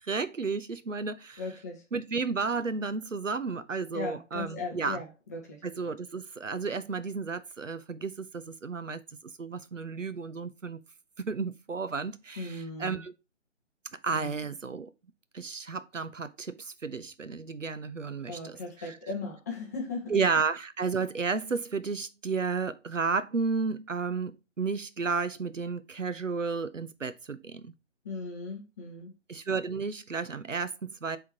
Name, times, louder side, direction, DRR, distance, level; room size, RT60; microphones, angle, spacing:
voice 1, 0.1-1.4 1.9-5.0 5.6-9.0 9.4-10.8 11.2-13.1 14.0-14.9 15.3-18.6 18.9-19.0 20.1-27.7 29.3-31.2, right 4 dB, 85° right, 0.8 m, -32 dB
voice 2, 1.4-1.8 3.9-5.6 12.4-13.0 14.1-14.5 18.3-20.2 28.0-29.1, left 3 dB, 15° left, 0.7 m, -38 dB
10.5 x 3.6 x 2.9 m
figure-of-eight pair, 145°, 37 cm